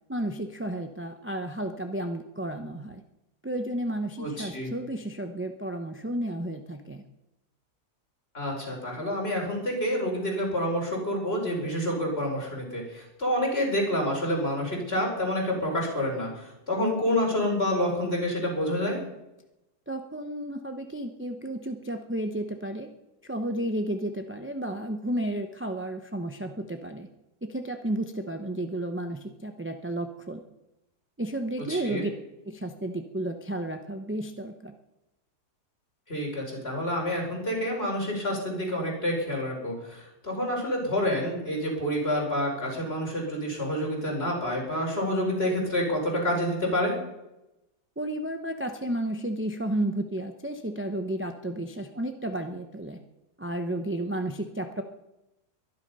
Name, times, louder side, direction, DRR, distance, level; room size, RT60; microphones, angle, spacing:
voice 1, 0.1-3.0 3.4-7.0 19.9-22.9 23.2-27.1 27.4-30.4 31.2-32.1 32.4-34.7 48.0-53.0 53.4-54.8, right 1 dB, 10° right, 6 dB, 0.7 m, -32 dB
voice 2, 4.2-4.7 8.3-19.0 31.7-32.0 36.1-47.0, equal, 40° left, 0 dB, 4.9 m, -28 dB
22.5 x 11.0 x 5.5 m, 0.93 s
omnidirectional pair, 1.7 m